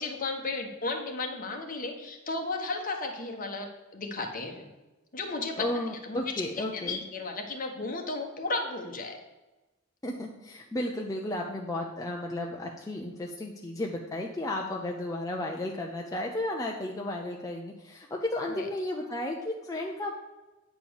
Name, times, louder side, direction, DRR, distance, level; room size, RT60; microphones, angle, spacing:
voice 1, 0.0-4.7 5.1-5.6 6.0-9.2 18.5-18.7, left 3 dB, 40° left, 3 dB, 1.3 m, -34 dB
voice 2, 5.6-7.0 10.0-20.1, left 1 dB, 15° left, -1 dB, 0.7 m, -33 dB
9.1 x 4.5 x 7.0 m, 1.1 s
head